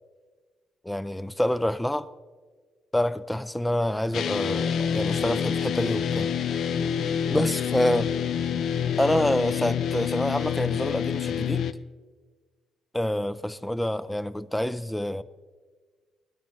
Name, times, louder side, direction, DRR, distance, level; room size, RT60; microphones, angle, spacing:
voice 1, 0.8-2.1 2.9-6.3 7.3-8.1 9.0-11.7 12.9-15.2, left 1 dB, 5° left, 0.5 m, -27 dB
sound 1, 4.1-11.7, left 8 dB, 70° left, 0.5 m, -27 dB
19.0 x 13.0 x 3.1 m
cardioid pair, 90°, 0 cm